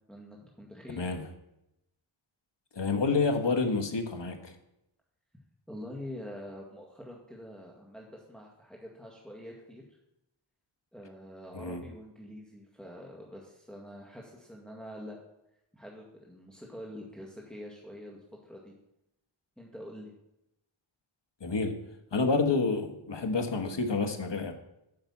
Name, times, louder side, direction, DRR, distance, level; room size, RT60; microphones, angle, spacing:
voice 1, 0.1-1.2 5.7-10.0 10.9-15.2 15.7-18.7 19.6-20.1, left 1 dB, ahead, -3 dB, 1.9 m, -45 dB
voice 2, 2.7-4.5 11.5-11.8 21.4-21.8 22.1-24.5, left 4 dB, 55° left, 6 dB, 1.4 m, -28 dB
8.7 x 5.8 x 7.2 m, 0.86 s
cardioid pair, 45°, 50 cm